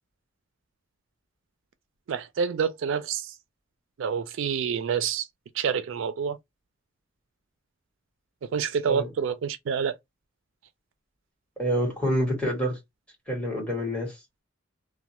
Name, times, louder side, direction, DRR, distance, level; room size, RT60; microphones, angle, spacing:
voice 1, 2.1-3.3 4.0-5.3 5.5-6.4 8.4-10.0, right 7 dB, 70° right, 0.3 m, -28 dB
voice 2, 11.6-12.8 13.3-14.2, equal, 5° left, 1.8 m, -27 dB
3.1 x 2.1 x 2.9 m
head